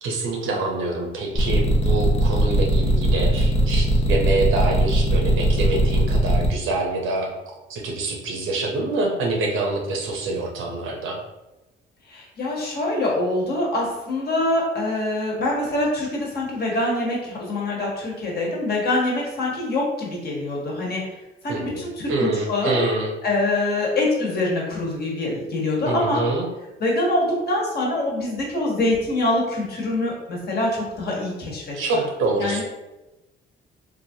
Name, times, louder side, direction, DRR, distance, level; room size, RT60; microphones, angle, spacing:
voice 1, 0.0-7.3 7.7-11.2 21.5-23.1 25.8-26.5 31.7-32.6, right 2 dB, 85° right, 0 dB, 0.7 m, -26 dB
sound 1, 1.4-6.5, right 1 dB, 30° left, 0.6 m, -19 dB
voice 2, 12.1-21.0 21.4-22.8 23.2-26.2 26.8-31.7 32.4-32.6, left 2 dB, 55° left, -3 dB, 1.1 m, -24 dB
3.0 x 2.4 x 2.7 m, 1.0 s
cardioid pair, 90°, 20 cm